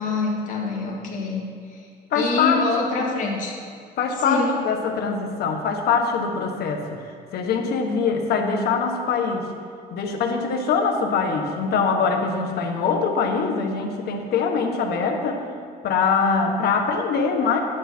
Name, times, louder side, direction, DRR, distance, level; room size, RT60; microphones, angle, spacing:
voice 1, 0.0-1.4 1.7-1.8 2.1-3.6 4.2-4.5, left 4 dB, 50° left, -2 dB, 2.4 m, -25 dB
voice 2, 2.1-3.1 4.0-9.5 9.9-15.4 15.8-17.6, left 5 dB, 70° left, 3 dB, 1.4 m, -23 dB
10.5 x 10.0 x 4.5 m, 2.2 s
cardioid pair, 110°, 17 cm